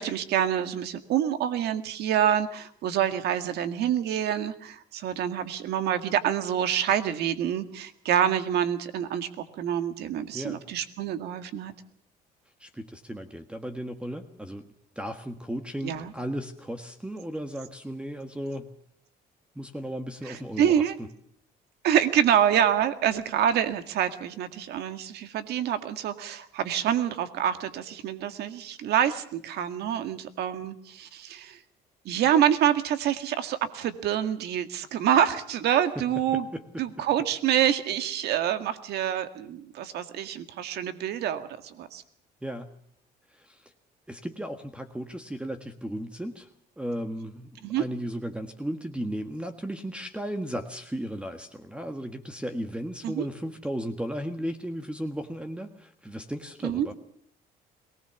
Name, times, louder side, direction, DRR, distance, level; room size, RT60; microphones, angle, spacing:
voice 1, 0.0-9.3 9.6-11.7 15.8-16.1 20.3-20.9 21.8-31.6 32.1-36.5 36.8-42.0 47.6-47.8 53.0-53.3 56.6-56.9, right 10 dB, 75° right, 9 dB, 1.9 m, -26 dB
voice 2, 12.6-14.7 14.9-18.7 19.5-21.1 35.9-36.0 36.3-36.8 42.4-42.7 43.3-43.7 44.1-46.5 46.8-56.9, equal, 5° right, 7 dB, 1.5 m, -35 dB
22.5 x 19.0 x 7.0 m, 0.65 s
cardioid pair, 110°, 17 cm